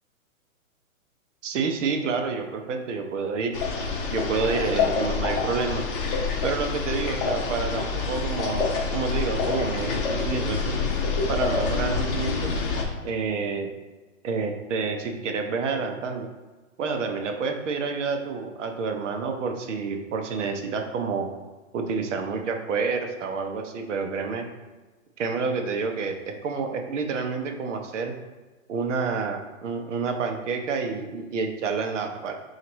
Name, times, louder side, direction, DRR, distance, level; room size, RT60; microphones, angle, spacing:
voice 1, 1.4-3.5 4.1-5.8 6.4-10.8 11.3-12.5 13.0-13.7 14.2-16.3 16.8-21.3 21.7-24.5 25.2-28.2 28.7-32.3, right 4 dB, 60° right, 4 dB, 0.7 m, -28 dB
sound 1, 3.5-12.9, left 4 dB, 40° left, 0.7 m, -27 dB
5.7 x 2.5 x 3.0 m, 1.2 s
hypercardioid pair, 150°, 41 cm